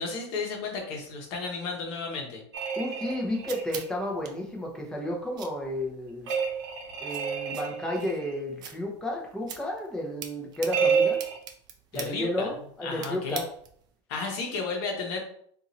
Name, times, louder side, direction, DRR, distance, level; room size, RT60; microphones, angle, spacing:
voice 1, 0.0-2.4 11.9-12.5 12.8-13.4 14.1-15.2, left 4 dB, 50° left, 1 dB, 1.1 m, -33 dB
sound 1, 2.5-3.9 6.3-8.4 10.7-11.4, right 6 dB, 75° right, 0.8 m, -29 dB
voice 2, 2.8-6.3 7.0-11.2 11.9-12.5 12.8-13.5, left 1 dB, 5° left, -1 dB, 0.7 m, -32 dB
sound 2, 2.9-13.9, right 7 dB, 30° right, 0.4 m, -45 dB
2.7 x 2.5 x 4.0 m, 0.63 s
supercardioid pair, 145°, 15 cm